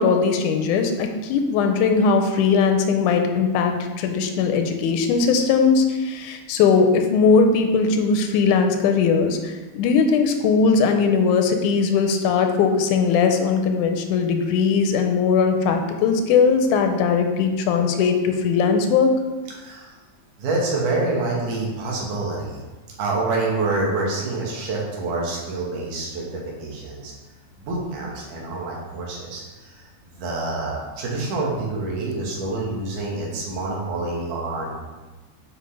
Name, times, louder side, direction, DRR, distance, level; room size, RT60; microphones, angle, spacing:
voice 1, 0.0-19.1, left 5 dB, 85° left, 5 dB, 2.1 m, -19 dB
voice 2, 19.6-19.9 20.4-22.7 23.0-27.1 27.6-29.9 30.1-34.7, right 2 dB, 85° right, -3 dB, 2.9 m, -27 dB
7.7 x 5.4 x 3.3 m, 1.2 s
omnidirectional pair, 3.5 m